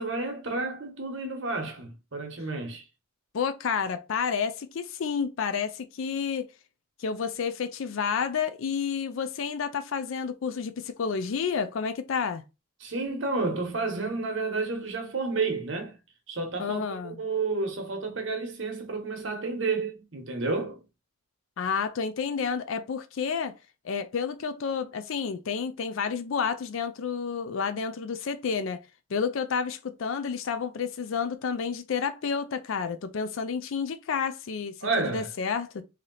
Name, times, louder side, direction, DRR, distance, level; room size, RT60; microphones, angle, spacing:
voice 1, 0.0-2.8 12.8-15.9 16.3-20.8 34.8-35.3, right 3 dB, 60° right, 1.0 m, -31 dB
voice 2, 3.3-6.5 7.0-12.4 16.6-17.2 21.6-23.5 23.8-28.8 29.1-35.8, left 6 dB, 70° left, 0.4 m, -30 dB
3.2 x 2.8 x 3.9 m
head